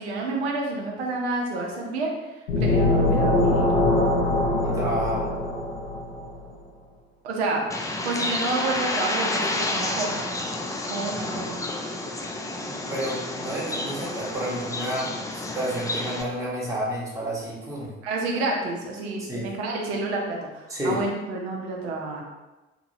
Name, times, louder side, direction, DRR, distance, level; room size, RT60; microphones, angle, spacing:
voice 1, 0.0-2.1 2.6-3.7 7.2-7.6 8.0-10.2 10.9-11.6 18.0-22.2, right 2 dB, 75° right, 0 dB, 0.6 m, -29 dB
sound 1, 2.5-6.2, left 2 dB, 75° left, 0.7 m, -22 dB
voice 2, 4.6-5.3 12.6-17.9 19.2-19.5 20.7-21.0, right 1 dB, 10° right, -5 dB, 0.9 m, -30 dB
Bird, 7.7-16.2, left 2 dB, 10° left, 0.4 m, -30 dB
2.9 x 2.7 x 2.6 m, 1.1 s
figure-of-eight pair, 50°, 32 cm